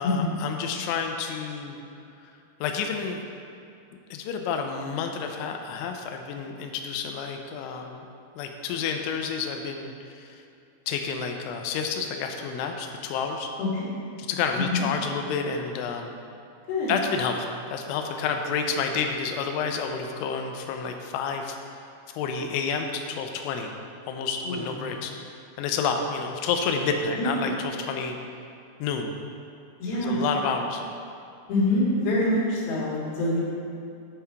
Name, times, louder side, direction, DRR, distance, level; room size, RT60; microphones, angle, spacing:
voice 1, 0.0-1.8 2.6-3.2 4.1-8.1 8.4-10.4 10.9-13.5 14.3-16.1 16.9-21.6 22.1-23.8 24.1-25.1 25.6-28.2 28.8-29.1 30.0-30.8, left 5 dB, 90° left, 4 dB, 3.1 m, -29 dB
voice 2, 14.5-14.8 16.7-17.0 24.4-24.9 27.2-27.3 29.8-30.2 31.5-33.4, left 1 dB, 65° left, -9 dB, 3.4 m, -25 dB
9.7 x 5.7 x 4.5 m, 2.6 s
omnidirectional pair, 5.3 m